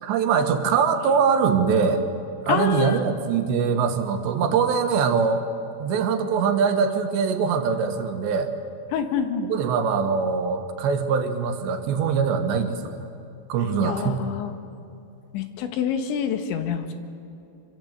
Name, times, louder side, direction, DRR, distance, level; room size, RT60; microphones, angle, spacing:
voice 1, 0.0-2.0 2.4-5.5 5.8-8.5 9.4-12.9 13.5-14.2, right 6 dB, 75° right, 6 dB, 3.6 m, -23 dB
voice 2, 2.5-3.0 8.9-9.5 13.8-14.5 15.3-16.9, left 8 dB, 85° left, 7 dB, 3.9 m, -26 dB
26.0 x 24.5 x 8.1 m, 2.6 s
omnidirectional pair, 5.1 m